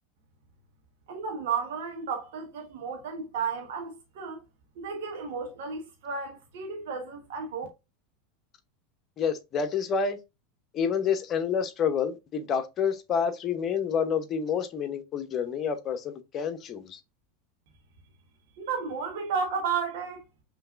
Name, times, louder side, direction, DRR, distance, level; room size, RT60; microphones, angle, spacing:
voice 1, 1.1-4.4 4.8-7.7 18.6-20.2, right 5 dB, 65° right, 1.2 m, -33 dB
voice 2, 9.2-10.2 10.7-17.0, left 7 dB, 35° left, 0.9 m, -28 dB
5.7 x 3.3 x 2.6 m
hypercardioid pair, 85°, 0 cm